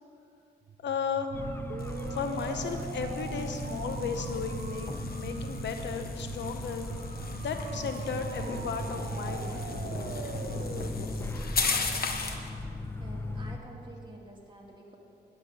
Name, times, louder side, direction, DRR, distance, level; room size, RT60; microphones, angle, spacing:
sound 1, 0.7-12.5, right 6 dB, 55° right, 0.6 m, -42 dB
voice 1, 0.8-1.3 2.1-6.8 7.4-9.6, left 6 dB, 80° left, 6 dB, 0.8 m, -35 dB
sound 2, 1.3-13.6, left 1 dB, 15° left, 0.7 m, -38 dB
sound 3, 1.8-12.5, left 4 dB, 55° left, 1.1 m, -38 dB
voice 2, 13.0-15.0, right 1 dB, 25° right, -2 dB, 2.3 m, -49 dB
10.0 x 6.1 x 8.5 m, 2.6 s
cardioid pair, 75°, 18 cm